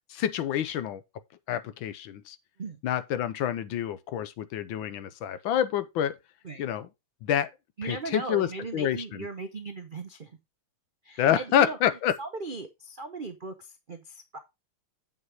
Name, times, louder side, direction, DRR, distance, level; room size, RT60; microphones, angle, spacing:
voice 1, 0.1-1.0 1.5-2.4 2.8-6.1 6.6-6.9 7.2-7.5 7.8-9.2 11.2-12.1, left 10 dB, 75° left, 1.5 m, -27 dB
voice 2, 7.8-10.4 11.0-14.4, right 3 dB, 70° right, 0.4 m, -38 dB
8.2 x 5.6 x 4.6 m
omnidirectional pair, 2.3 m